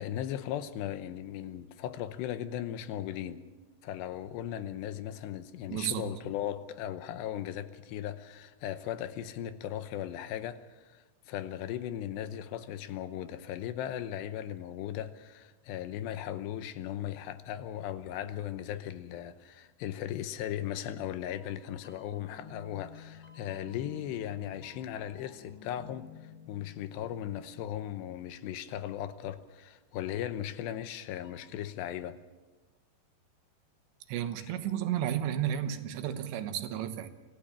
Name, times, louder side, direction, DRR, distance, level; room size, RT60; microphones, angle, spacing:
voice 1, 0.0-3.4 3.8-26.1 26.5-32.2, left 11 dB, 85° left, 3.0 m, -37 dB
voice 2, 5.7-6.2 34.1-37.1, right 10 dB, 85° right, 3.4 m, -32 dB
sound 1, 20.7-28.4 30.6-31.5, left 5 dB, 35° left, 2.9 m, -53 dB
25.0 x 15.5 x 7.3 m
omnidirectional pair, 4.9 m